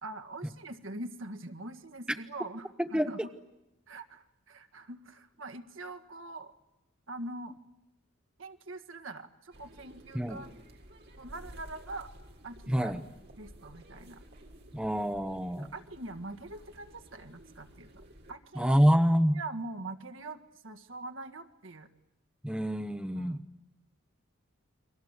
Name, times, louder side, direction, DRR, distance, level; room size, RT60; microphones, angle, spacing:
voice 1, 0.0-3.3 3.9-6.5 7.1-7.6 8.4-10.5 11.2-12.1 12.4-12.9 13.4-14.2 15.7-18.8 19.3-21.9 23.1-23.4, right 2 dB, 65° right, 7 dB, 1.8 m, -43 dB
voice 2, 2.8-3.1 10.1-10.4 12.7-13.0 14.7-15.7 18.6-19.4 22.4-23.4, equal, 5° right, 8 dB, 0.9 m, -26 dB
sound 1, 9.5-18.3, right 1 dB, 50° right, 3.4 m, -53 dB
30.0 x 23.0 x 8.2 m, 0.91 s
head